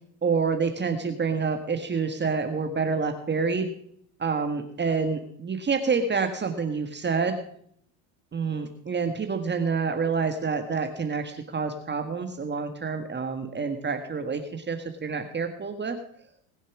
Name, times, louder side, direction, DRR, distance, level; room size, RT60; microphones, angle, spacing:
voice 1, 0.2-3.7 4.2-7.4 8.3-16.0, right 5 dB, 25° right, 6 dB, 1.7 m, -28 dB
20.0 x 7.2 x 6.1 m, 0.65 s
supercardioid pair, 100°, 44 cm